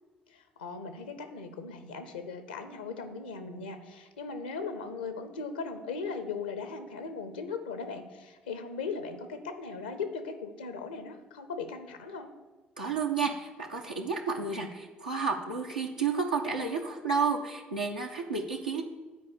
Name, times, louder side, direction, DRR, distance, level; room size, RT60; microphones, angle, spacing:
voice 1, 0.3-12.3, left 4 dB, 80° left, 9 dB, 0.7 m, -38 dB
voice 2, 12.8-18.8, right 5 dB, 85° right, -3 dB, 0.8 m, -31 dB
9.3 x 4.7 x 7.1 m, 1.3 s
figure-of-eight pair, 50°, 5 cm